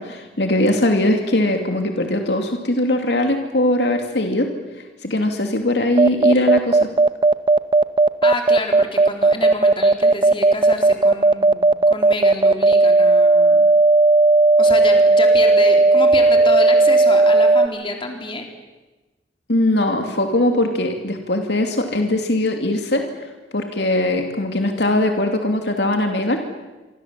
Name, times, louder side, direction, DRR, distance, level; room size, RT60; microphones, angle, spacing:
voice 1, 0.0-4.5 5.0-6.8 19.5-23.0 23.5-26.4, left 1 dB, 70° left, 4 dB, 2.7 m, -20 dB
sound 1, 6.0-17.7, right 2 dB, 30° right, 0.9 m, -14 dB
voice 2, 8.2-13.7 14.6-18.5, left 2 dB, 30° left, 2 dB, 4.0 m, -28 dB
26.0 x 25.5 x 7.6 m, 1.2 s
head